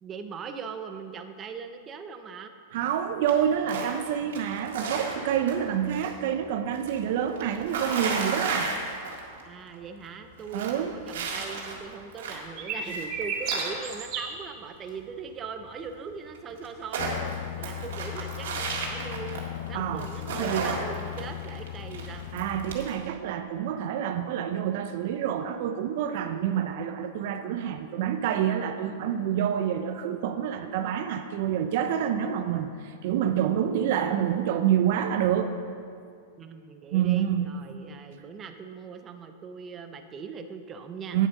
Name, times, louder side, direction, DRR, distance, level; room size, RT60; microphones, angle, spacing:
voice 1, 0.0-2.5 9.4-22.3 36.4-41.2, right 5 dB, 25° right, 7 dB, 0.7 m, -40 dB
voice 2, 2.7-8.7 10.5-10.9 19.7-20.1 20.4-20.8 22.3-35.6 36.9-37.5 41.1-41.3, right 9 dB, 65° right, 8 dB, 0.5 m, -27 dB
Gravel on asphalt, 3.3-4.0 4.3-6.1 6.4-9.4 9.7-9.8 10.2-12.5 12.9-14.1 15.7-15.8 16.0-16.1 16.3-19.7 20.0-22.9, right 4 dB, 80° right, 1.8 m, -34 dB
sound 1, 12.6-14.3, right 6 dB, 45° right, 1.4 m, -32 dB
sound 2, 17.0-22.8, left 14 dB, 60° left, 0.4 m, -38 dB
9.3 x 7.2 x 5.3 m, 2.2 s
hypercardioid pair, 125°, 0 cm